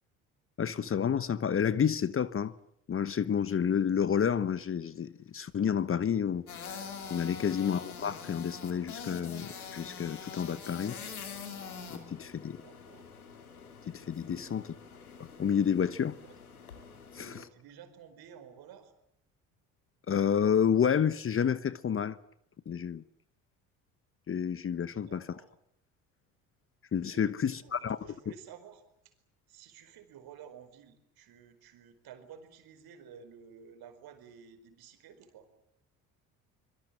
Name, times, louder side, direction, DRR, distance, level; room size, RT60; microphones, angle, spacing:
voice 1, 0.6-2.5 2.9-6.4 7.1-11.0 11.9-12.6 13.9-14.6 15.4-16.2 17.1-17.5 20.1-22.2 22.7-23.0 24.3-25.2 26.9-28.0, left 8 dB, 30° left, 1.1 m, -29 dB
sound 1, 6.5-17.4, left 6 dB, 85° left, 3.1 m, -45 dB
voice 2, 12.5-13.1 14.2-14.7 16.2-16.3 17.1-18.9 24.9-25.5 27.1-29.1 29.5-35.5, right 7 dB, 55° right, 4.8 m, -53 dB
25.5 x 23.5 x 8.9 m
figure-of-eight pair, 55°, 43 cm